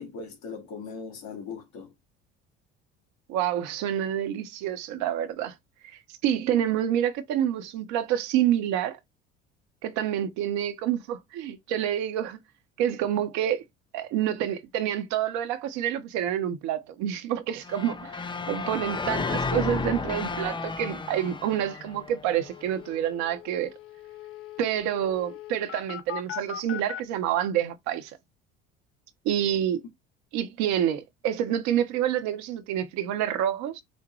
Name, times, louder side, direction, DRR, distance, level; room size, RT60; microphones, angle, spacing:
voice 1, 0.0-1.9 20.1-20.2, left 5 dB, 65° left, 2.3 m, -39 dB
voice 2, 3.3-5.5 6.2-9.0 9.8-12.4 12.8-13.6 13.9-23.7 24.6-28.1 29.2-29.8 30.3-33.8, right 10 dB, 70° right, 1.0 m, -28 dB
sound 1, 17.6-22.7, left 4 dB, 15° left, 0.5 m, -32 dB
sound 2, 21.7-21.8 22.1-22.2 22.4-27.0, left 11 dB, 45° left, 0.8 m, -40 dB
6.5 x 2.2 x 3.1 m
hypercardioid pair, 70°, 30 cm